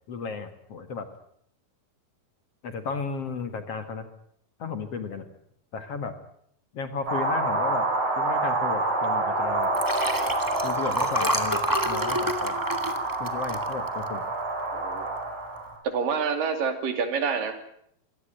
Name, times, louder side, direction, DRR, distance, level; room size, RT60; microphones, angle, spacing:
voice 1, 0.1-1.1 2.6-4.1 4.6-5.3 5.7-6.1 6.7-7.9 8.2-9.7 10.6-12.5 13.2-14.2, left 5 dB, 50° left, 9 dB, 2.3 m, -34 dB
sound 1, 7.1-15.8, right 2 dB, 55° right, 6.8 m, -28 dB
Liquid, 9.6-14.3 14.8-15.0 15.3-15.4, equal, 10° right, 1.0 m, -29 dB
voice 2, 14.7-15.1 15.8-17.7, right 5 dB, 70° right, 8 dB, 4.4 m, -27 dB
25.0 x 18.0 x 9.1 m, 0.70 s
omnidirectional pair, 4.1 m